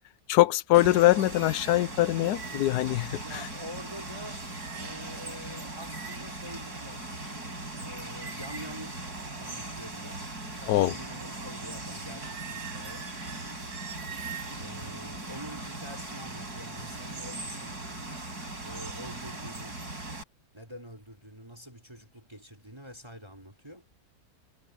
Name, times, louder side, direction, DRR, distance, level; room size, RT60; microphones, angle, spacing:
voice 1, 0.3-3.5 10.7-10.9, left 16 dB, 85° left, 1.2 m, -23 dB
Water, 0.7-20.2, right 2 dB, 80° right, 6.3 m, -39 dB
voice 2, 3.2-4.4 4.8-7.3 7.7-9.1 9.4-13.1 14.5-17.9 18.6-19.8 20.5-23.9, equal, 15° right, 4.7 m, -46 dB
omnidirectional pair, 1.7 m